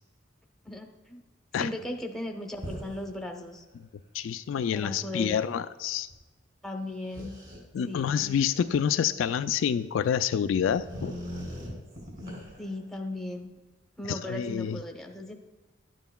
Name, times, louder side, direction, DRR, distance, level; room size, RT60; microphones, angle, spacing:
voice 1, 0.6-1.2 1.5-3.6 4.7-5.4 6.6-7.3 7.9-8.3 12.6-13.5 14.0-15.3, left 1 dB, 5° left, 3 dB, 0.8 m, -37 dB
sound 1, 2.5-3.1 3.6-3.7 6.1-6.2 7.1-9.0 10.0-10.1 10.5-12.8, equal, 50° right, 3.1 m, -41 dB
voice 2, 4.1-6.1 7.7-11.1 14.1-14.8, left 8 dB, 75° left, 11 dB, 0.3 m, -27 dB
11.5 x 9.0 x 2.2 m, 1.2 s
head